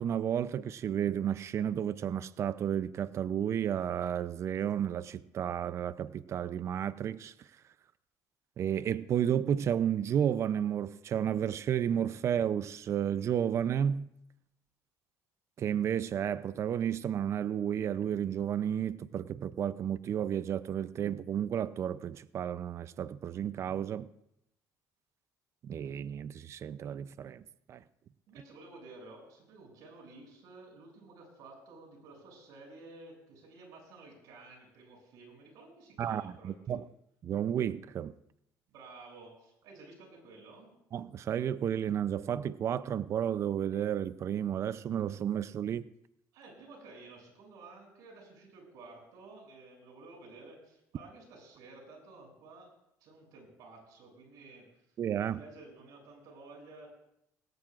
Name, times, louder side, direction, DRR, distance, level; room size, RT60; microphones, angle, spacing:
voice 1, 0.0-7.3 8.6-14.1 15.6-24.1 25.6-27.4 27.7-27.8 36.0-36.8 37.2-38.1 40.9-45.9 55.0-55.4, right 9 dB, 45° right, 15 dB, 0.5 m, -32 dB
voice 2, 28.3-36.8 38.7-40.7 46.3-52.7 53.0-54.9 55.3-56.9, right 3 dB, 75° right, 0 dB, 7.2 m, -52 dB
19.0 x 17.5 x 2.5 m, 0.79 s
cardioid pair, 105°, 7 cm